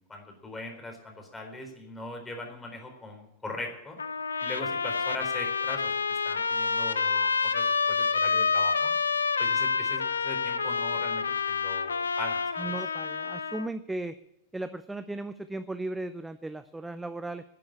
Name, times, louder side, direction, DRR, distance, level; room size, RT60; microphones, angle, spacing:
voice 1, 0.0-4.0 4.4-8.9 9.4-12.7, left 2 dB, 10° left, 2 dB, 4.1 m, -40 dB
Trumpet, 4.0-13.7, left 5 dB, 75° left, 0.6 m, -28 dB
voice 2, 12.6-14.2 14.5-17.4, right 2 dB, 5° right, 12 dB, 0.5 m, -36 dB
11.0 x 9.2 x 9.9 m, 0.86 s
figure-of-eight pair, 90°, 0 cm